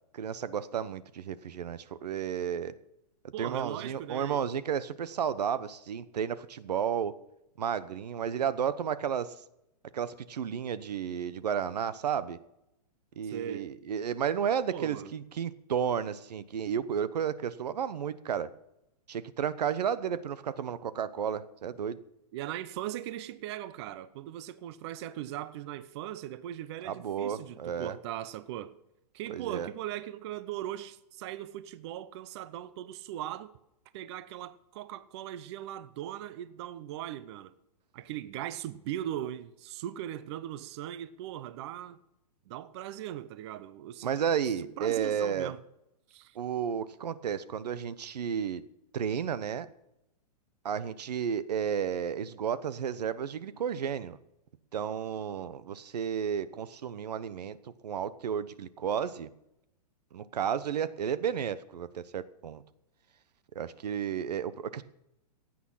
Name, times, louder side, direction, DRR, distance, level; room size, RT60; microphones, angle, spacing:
voice 1, 0.1-2.7 3.4-7.1 7.6-9.3 9.9-12.4 13.2-18.5 19.1-22.0 26.8-28.0 29.3-29.7 44.0-45.5 46.3-48.6 48.9-49.7 50.6-54.2 54.7-57.6 57.8-59.3 60.1-62.6 63.5-64.8, right 8 dB, 80° right, 1.0 m, -32 dB
voice 2, 3.3-4.5 13.2-13.7 14.7-15.1 22.3-28.7 29.1-33.5 33.9-37.5 37.9-42.0 42.5-44.1 44.8-45.6 46.1-46.4, right 12 dB, 40° right, 0.7 m, -39 dB
16.5 x 8.9 x 5.7 m
hypercardioid pair, 145°, 20 cm